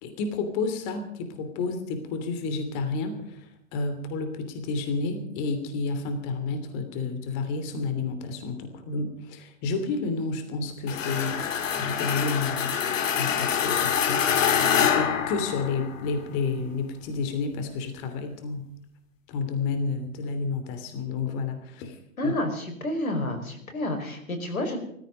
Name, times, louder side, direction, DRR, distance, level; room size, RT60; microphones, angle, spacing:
voice 1, 0.0-11.5 11.8-12.8 13.2-14.2 14.8-18.7 19.3-22.0 22.2-22.4, left 4 dB, 35° left, 8 dB, 3.0 m, -30 dB
sound 1, 10.9-16.1, left 8 dB, 65° left, 2.3 m, -25 dB
voice 2, 22.2-24.8, left 1 dB, 90° left, 7 dB, 5.0 m, -29 dB
18.0 x 15.0 x 5.2 m, 0.72 s
hypercardioid pair, 130°, 41 cm